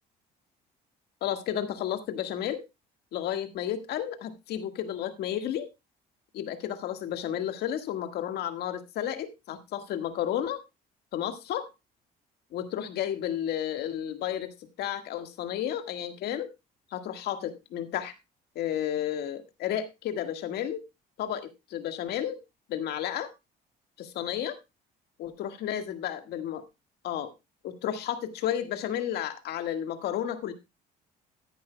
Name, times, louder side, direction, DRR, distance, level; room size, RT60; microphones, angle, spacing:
voice 1, 1.2-2.6 3.1-5.7 6.3-10.6 11.1-11.7 12.5-16.5 16.9-18.1 18.5-20.8 21.2-22.4 22.7-23.3 24.0-24.6 25.2-26.6 27.0-27.3 27.6-30.5, left 10 dB, 75° left, 1.7 m, -32 dB
14.0 x 10.0 x 2.2 m
cardioid pair, 110°, 17 cm